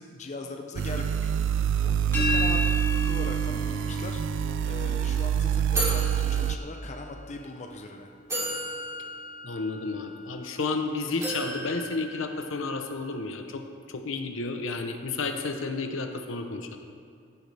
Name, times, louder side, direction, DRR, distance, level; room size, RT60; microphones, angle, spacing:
voice 1, 0.0-1.3 1.8-2.6 3.0-4.2 4.6-8.1, left 2 dB, 35° left, 4 dB, 0.6 m, -40 dB
sound 1, 0.7-6.6, right 9 dB, 65° right, 0.4 m, -26 dB
sound 2, 2.1-7.9, equal, 10° left, 2.5 m, -34 dB
sound 3, 5.8-7.2 7.8-7.9 8.3-10.7 11.2-12.9, right 1 dB, 15° right, 3.1 m, -35 dB
voice 2, 9.4-13.6 13.9-16.8, left 3 dB, 70° left, 6 dB, 0.9 m, -31 dB
14.5 x 10.5 x 3.4 m, 2.4 s
head